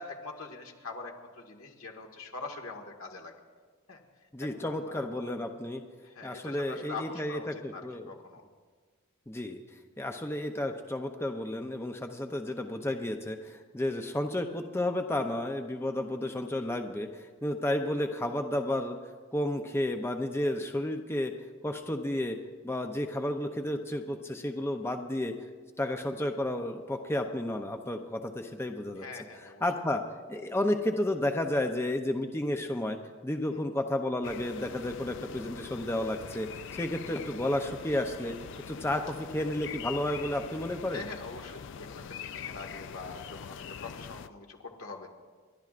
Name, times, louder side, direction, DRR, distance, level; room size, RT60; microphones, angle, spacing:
voice 1, 0.0-3.3 3.9-4.0 4.4-5.1 6.0-8.4 29.0-29.6 33.5-33.6 38.9-39.0 40.9-45.1, left 3 dB, 80° left, 1 dB, 1.7 m, -43 dB
voice 2, 4.3-5.8 6.2-8.1 9.3-9.6 10.0-19.0 19.3-21.3 21.6-22.4 22.6-25.3 25.8-29.1 29.6-30.0 30.3-33.0 33.2-36.5 36.8-38.3 38.7-41.0, left 1 dB, 10° left, 4 dB, 0.6 m, -32 dB
sound 1, 34.2-44.3, left 7 dB, 60° left, 0.4 m, -43 dB
29.5 x 11.5 x 2.5 m, 1.5 s
head